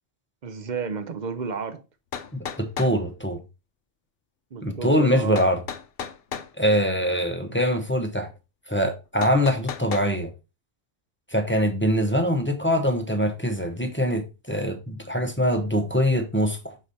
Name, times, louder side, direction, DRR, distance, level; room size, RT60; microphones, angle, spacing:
voice 1, 0.4-1.8 4.5-5.5 7.1-7.2, right 5 dB, 45° right, 0.7 m, -31 dB
sound 1, 1.6-1.7 2.1-3.0 5.4-6.5 9.2-10.1, left 7 dB, 55° left, 0.8 m, -34 dB
voice 2, 2.6-3.4 4.6-5.6 6.6-8.3 8.7-10.3 11.3-16.7, equal, 10° left, 0.8 m, -23 dB
6.4 x 5.0 x 4.1 m
omnidirectional pair, 1.3 m